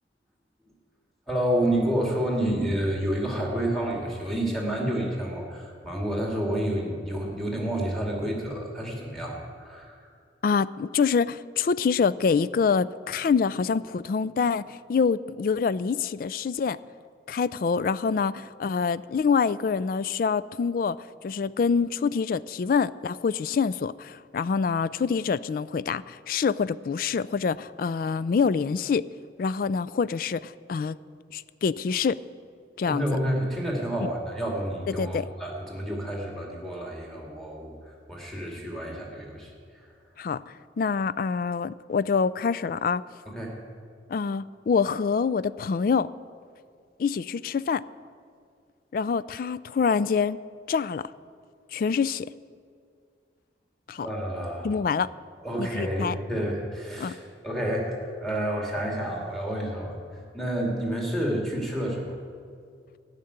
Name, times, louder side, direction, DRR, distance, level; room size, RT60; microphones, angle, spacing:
voice 1, 1.3-10.0 32.9-37.7 38.1-39.5 43.3-43.6 54.0-54.8 55.4-57.2 57.4-60.0 60.3-62.1, right 1 dB, ahead, -1 dB, 2.2 m, -29 dB
voice 2, 10.4-16.8 17.3-21.0 21.2-29.1 29.4-31.0 31.3-32.2 32.8-33.0 34.0-34.1 35.0-35.3 40.2-43.0 44.1-46.1 47.0-47.8 48.9-50.4 50.7-51.1 51.7-52.3 53.9-54.1 54.6-55.1 55.6-56.1 57.0-57.2, left 5 dB, 50° left, 17 dB, 0.3 m, -26 dB
13.0 x 6.7 x 9.6 m, 2.2 s
head